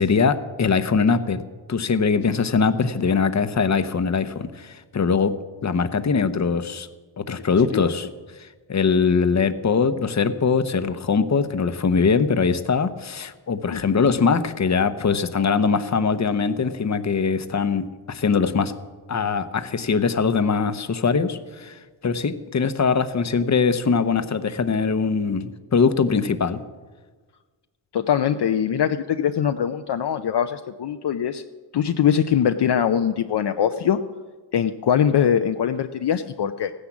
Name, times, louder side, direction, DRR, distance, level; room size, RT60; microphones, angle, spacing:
voice 1, 0.0-1.4 1.7-5.3 5.6-6.9 7.2-8.1 8.7-18.7 19.1-26.6, left 5 dB, 35° left, 11 dB, 0.9 m, -22 dB
voice 2, 27.9-31.4 31.7-34.0 34.5-36.7, left 8 dB, 60° left, 7 dB, 0.7 m, -22 dB
16.0 x 10.0 x 7.2 m, 1.4 s
cardioid pair, 90°, 46 cm